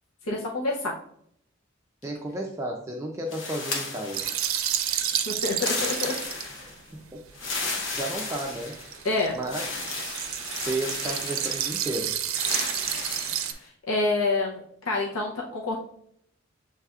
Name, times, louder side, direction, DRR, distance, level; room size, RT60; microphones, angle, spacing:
voice 1, 0.2-0.9 5.3-6.7 9.0-9.4 13.6-15.8, left 2 dB, 90° left, -2 dB, 0.7 m, -28 dB
voice 2, 2.0-4.3 6.6-6.7 7.1-7.2 7.6-8.8 9.3-9.6 10.7-12.1, right 1 dB, 15° right, 0 dB, 0.4 m, -33 dB
sound 1, 3.3-4.8 5.5-6.8 7.3-9.0 9.5-11.9 12.3-13.6, left 3 dB, 65° left, 1.0 m, -34 dB
sound 2, 4.1-6.5 8.2-13.5, right 10 dB, 85° right, 0.5 m, -30 dB
6.9 x 3.3 x 2.3 m, 0.70 s
head